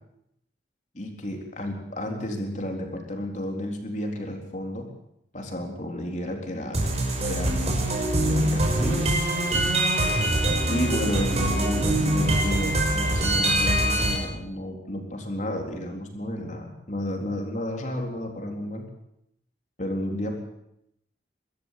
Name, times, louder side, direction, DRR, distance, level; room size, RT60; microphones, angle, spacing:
voice 1, 0.9-4.9 5.3-6.8 7.1-7.7 8.2-9.1 10.7-18.9 19.8-20.4, left 1 dB, 40° left, 2 dB, 3.9 m, -32 dB
sound 1, 6.7-14.1, right 1 dB, 35° right, 5.7 m, -23 dB
23.5 x 13.5 x 8.4 m, 0.79 s
head